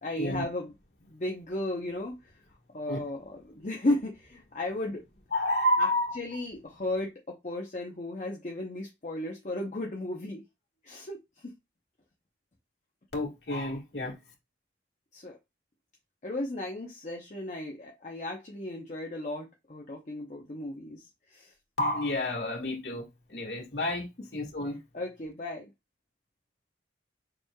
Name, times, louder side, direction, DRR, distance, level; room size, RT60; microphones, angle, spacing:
voice 1, 0.0-0.7 1.1-2.4 2.7-5.0 5.8-5.9 6.1-10.4 10.8-11.5 15.1-15.4 16.2-21.5 24.9-25.7, left 1 dB, 40° left, 0.7 m, -35 dB
voice 2, 5.3-6.2 13.1-14.1 21.8-24.8, left 1 dB, 70° left, 1.6 m, -30 dB
6.8 x 3.1 x 2.2 m
head